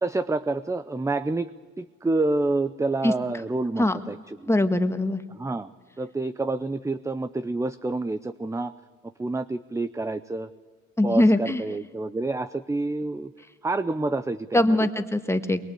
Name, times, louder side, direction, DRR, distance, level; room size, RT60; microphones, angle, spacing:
voice 1, 0.0-1.5 1.8-4.5 5.3-5.7 6.0-8.7 9.2-10.5 11.0-13.3 13.6-14.9, right 2 dB, 10° right, 14 dB, 0.6 m, -28 dB
voice 2, 4.5-5.2 11.0-11.6 14.5-15.7, left 1 dB, 10° left, 8 dB, 1.6 m, -22 dB
22.0 x 22.0 x 8.4 m, 1.5 s
cardioid pair, 90°, 30 cm